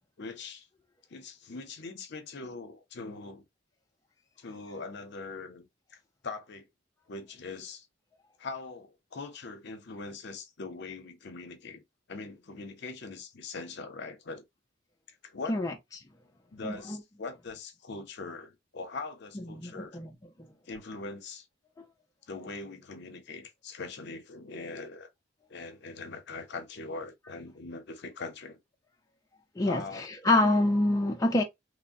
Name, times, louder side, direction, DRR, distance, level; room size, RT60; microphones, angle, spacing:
voice 1, 0.2-0.7 1.1-3.4 4.4-5.7 6.2-6.7 7.1-7.9 8.4-11.8 12.1-14.4 15.2-15.6 16.5-20.0 20.7-21.5 22.3-25.1 25.5-28.6 29.6-30.0, left 3 dB, 60° left, 0.6 m, -41 dB
voice 2, 19.6-20.1 29.6-31.4, left 2 dB, 15° left, 0.4 m, -26 dB
3.1 x 2.1 x 2.5 m
head